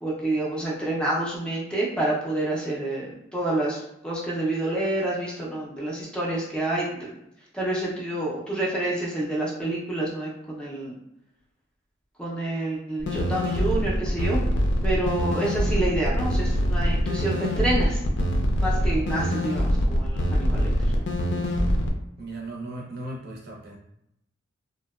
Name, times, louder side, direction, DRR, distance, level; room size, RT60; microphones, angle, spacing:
voice 1, 0.0-7.1 7.5-10.9 12.2-14.4 14.8-18.0 18.6-20.7, right 2 dB, 5° left, -5 dB, 0.4 m, -28 dB
sound 1, 13.0-21.9, equal, 60° left, 0.4 m, -24 dB
voice 2, 22.2-23.8, right 2 dB, 55° right, -3 dB, 0.7 m, -37 dB
2.6 x 2.1 x 2.3 m, 0.80 s
head